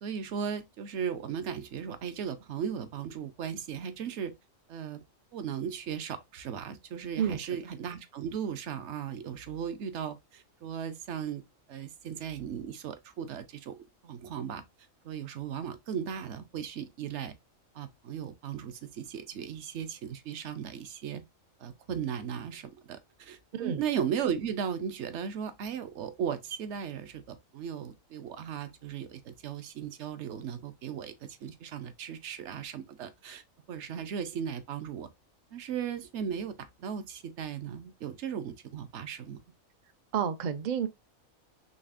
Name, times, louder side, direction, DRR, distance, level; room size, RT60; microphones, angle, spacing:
voice 1, 0.0-4.3 4.7-5.0 5.3-11.4 11.7-13.8 14.0-14.6 15.0-17.3 17.7-21.2 21.6-33.4 33.7-35.1 35.5-39.4, right 8 dB, 65° right, 0.9 m, -36 dB
voice 2, 7.2-7.5 23.5-23.8 40.1-40.9, right 8 dB, 80° right, 0.4 m, -30 dB
4.0 x 3.3 x 2.4 m
omnidirectional pair, 1.4 m